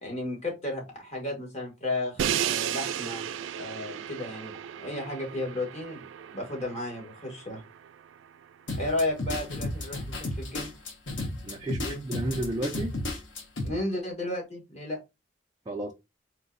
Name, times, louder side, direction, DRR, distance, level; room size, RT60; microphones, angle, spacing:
voice 1, 0.0-3.3 3.5-6.0 6.3-7.6 8.8-10.7 11.6-12.0 13.6-15.0, left 2 dB, 35° left, 1.6 m, -33 dB
Crash cymbal, 2.2-8.2, right 9 dB, 80° right, 0.3 m, -34 dB
sound 1, 8.7-13.7, left 2 dB, 90° left, 1.1 m, -33 dB
voice 2, 11.4-13.0 15.7-15.9, right 1 dB, 20° right, 0.4 m, -32 dB
4.0 x 3.0 x 2.5 m
head